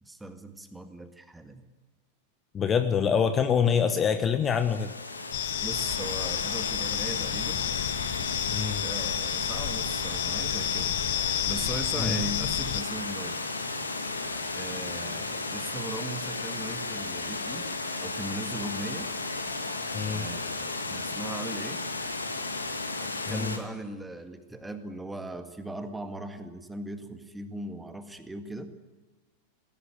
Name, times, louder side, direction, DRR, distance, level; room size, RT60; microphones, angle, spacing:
voice 1, 0.0-1.6 5.6-7.6 8.8-13.4 14.5-17.7 18.0-19.1 20.1-21.8 23.0-28.7, right 2 dB, 5° right, 8 dB, 1.9 m, -39 dB
voice 2, 2.5-4.9 8.5-8.8 12.0-12.2 19.9-20.3 23.2-23.6, left 7 dB, 25° left, 9 dB, 1.2 m, -25 dB
Water, 4.5-23.6, left 3 dB, 80° left, 2.2 m, -34 dB
sound 1, 5.3-12.8, left 15 dB, 50° left, 1.0 m, -31 dB
19.0 x 17.5 x 9.0 m, 1.2 s
figure-of-eight pair, 90°, 0 cm